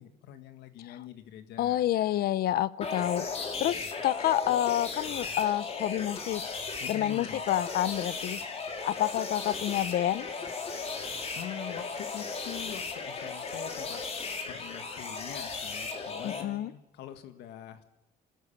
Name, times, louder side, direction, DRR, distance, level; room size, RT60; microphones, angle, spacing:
voice 1, 0.0-1.8 6.8-7.4 11.3-14.0 14.5-17.8, left 10 dB, 80° left, 8 dB, 1.9 m, -44 dB
voice 2, 1.6-6.4 6.9-8.4 8.8-10.3 16.2-16.7, left 12 dB, 65° left, 18 dB, 0.8 m, -29 dB
sound 1, 2.8-16.4, left 4 dB, 35° left, 3.4 m, -36 dB
27.0 x 13.0 x 8.6 m, 1.0 s
cardioid pair, 110°, 17 cm